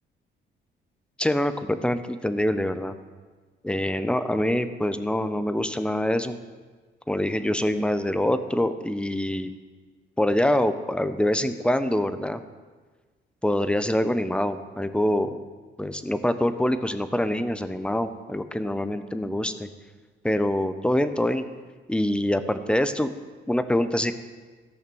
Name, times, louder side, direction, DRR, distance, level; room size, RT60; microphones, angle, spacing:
voice 1, 1.2-3.0 3.6-6.4 7.1-9.5 10.2-12.4 13.4-15.4 15.8-19.7 20.2-21.4 21.9-23.1 23.5-24.1, left 1 dB, 5° left, 11 dB, 0.7 m, -25 dB
14.5 x 5.7 x 7.0 m, 1.4 s
cardioid pair, 90°, 20 cm